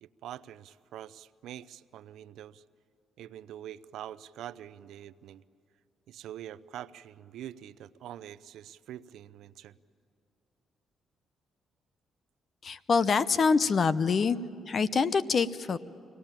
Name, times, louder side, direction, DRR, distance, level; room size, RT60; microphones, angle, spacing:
voice 1, 0.0-2.6 3.2-5.4 6.1-9.7, right 11 dB, 80° right, 17 dB, 0.5 m, -45 dB
voice 2, 12.6-14.4 14.7-15.8, left 5 dB, 45° left, 15 dB, 0.7 m, -25 dB
24.5 x 18.0 x 9.0 m, 2.5 s
cardioid pair, 90°, 0 cm